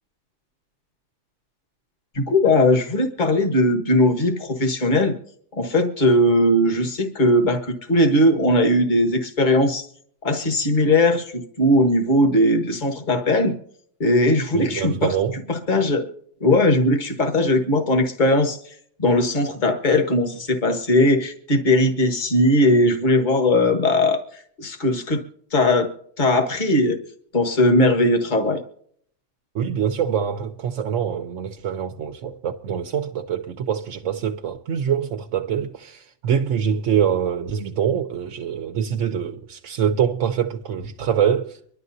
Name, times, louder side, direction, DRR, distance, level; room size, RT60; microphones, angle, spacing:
voice 1, 2.1-5.1 5.5-9.9 10.2-13.5 14.0-15.1 15.5-16.1 16.4-18.6 19.0-24.2 24.6-25.2 25.5-25.9 26.2-27.0 27.3-28.6, left 1 dB, 40° left, 1.7 m, -19 dB
voice 2, 14.5-15.4 29.5-41.6, right 8 dB, 85° right, 1.1 m, -24 dB
25.0 x 12.0 x 2.7 m
omnidirectional pair, 1.2 m